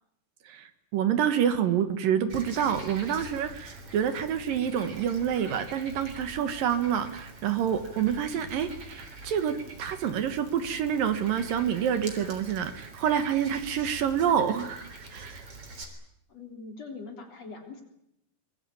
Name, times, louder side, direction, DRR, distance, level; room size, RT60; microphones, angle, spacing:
voice 1, 0.5-14.8 15.1-15.4, right 8 dB, 70° right, 10 dB, 3.0 m, -27 dB
Frog, 2.3-15.8, right 2 dB, 40° right, 4.3 m, -44 dB
voice 2, 16.3-17.8, left 4 dB, 45° left, 4 dB, 4.4 m, -42 dB
24.5 x 22.5 x 8.8 m, 0.77 s
omnidirectional pair, 4.4 m